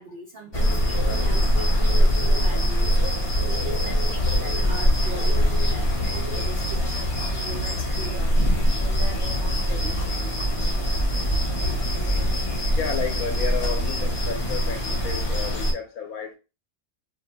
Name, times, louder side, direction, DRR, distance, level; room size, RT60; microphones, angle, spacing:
voice 1, 0.0-3.0 3.5-10.3, right 2 dB, 70° right, 0.5 m, -40 dB
sound 1, 0.5-15.7, equal, 35° left, 0.6 m, -23 dB
voice 2, 12.8-16.3, left 6 dB, 75° left, 1.1 m, -32 dB
2.7 x 2.2 x 3.9 m
omnidirectional pair, 1.6 m